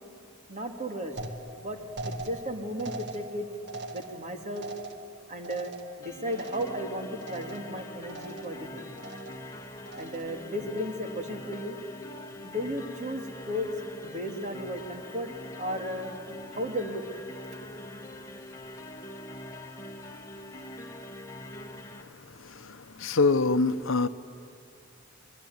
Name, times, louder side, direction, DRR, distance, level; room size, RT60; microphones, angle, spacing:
voice 1, 0.5-1.2 1.6-3.5 3.9-4.7 5.3-5.7 6.0-8.9 10.0-11.8 12.4-13.7 14.0-15.3 15.6-16.1 16.5-17.3, equal, 35° right, 5 dB, 2.4 m, -34 dB
sound 1, 1.2-6.9 7.2-7.8 8.1-8.7 9.0-9.5 9.9-10.4, right 2 dB, 60° right, 1.9 m, -42 dB
sound 2, 6.0-22.0, left 1 dB, 15° left, 1.6 m, -43 dB
voice 2, 23.0-24.1, left 3 dB, 70° left, 12 dB, 0.8 m, -23 dB
27.0 x 22.0 x 9.5 m, 2.4 s
head